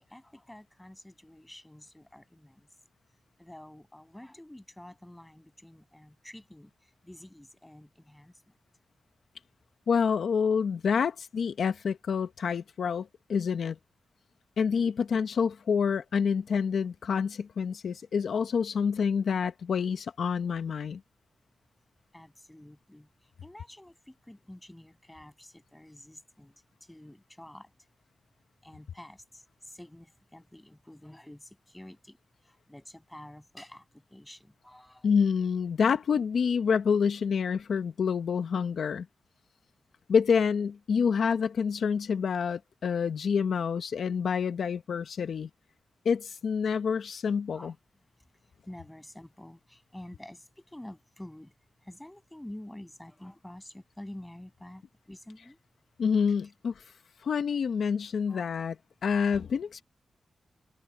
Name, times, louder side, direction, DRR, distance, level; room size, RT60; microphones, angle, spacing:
voice 1, 0.0-2.7 3.4-8.5 22.1-26.5 26.8-27.7 28.6-35.1 47.5-47.7 48.4-51.5 51.8-55.6 58.3-58.5, left 1 dB, 10° left, 7.8 m, -49 dB
voice 2, 9.9-13.8 14.6-21.0 35.0-39.1 40.1-45.5 46.0-47.7 56.0-56.8 57.2-58.8 59.0-59.8, left 6 dB, 75° left, 1.0 m, -27 dB
wide cardioid pair, 100°, 0 cm